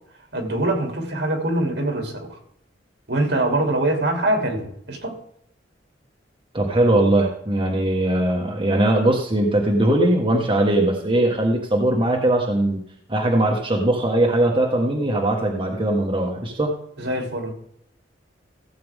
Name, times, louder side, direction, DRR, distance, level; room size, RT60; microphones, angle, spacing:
voice 1, 0.3-2.4 3.1-5.2 17.0-17.5, right 1 dB, 65° right, 3 dB, 3.1 m, -23 dB
voice 2, 6.5-12.8 13.1-16.7, right 1 dB, 30° right, -1 dB, 1.6 m, -20 dB
16.5 x 7.9 x 3.6 m, 0.70 s
head